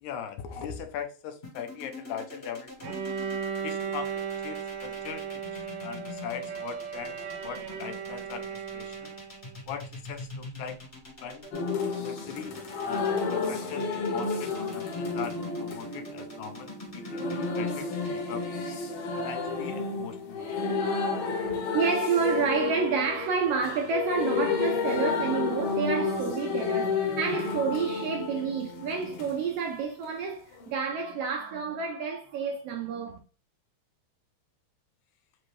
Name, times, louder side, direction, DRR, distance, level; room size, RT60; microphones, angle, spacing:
voice 1, 0.0-3.0 3.6-7.2 7.4-9.2 9.7-10.8 11.2-11.5 12.0-12.5 12.8-18.4 19.2-20.5, left 8 dB, 90° left, 2.1 m, -40 dB
sound 1, 1.4-19.6, left 3 dB, 50° left, 0.7 m, -44 dB
Bowed string instrument, 2.8-9.6, right 7 dB, 60° right, 2.0 m, -36 dB
sound 2, 11.5-29.3 30.6-30.7, left 4 dB, 70° left, 1.6 m, -31 dB
voice 2, 21.4-33.2, right 5 dB, 80° right, 1.4 m, -29 dB
5.1 x 2.7 x 3.1 m
omnidirectional pair, 3.3 m